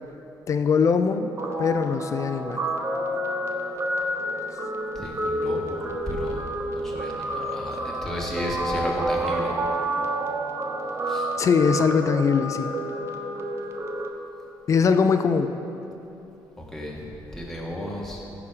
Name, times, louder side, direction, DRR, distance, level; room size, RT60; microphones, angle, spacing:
voice 1, 0.5-1.3 1.6-2.6 11.4-12.7 14.7-15.5, left 6 dB, 40° left, 9 dB, 0.5 m, -21 dB
Guitar, 1.4-14.1, right 1 dB, 35° right, 0.9 m, -29 dB
voice 2, 5.0-6.4 6.8-9.6 11.1-11.3 16.7-18.2, left 1 dB, 5° left, -3 dB, 1.7 m, -33 dB
15.0 x 6.1 x 5.0 m, 2.9 s
cardioid pair, 140°, 8 cm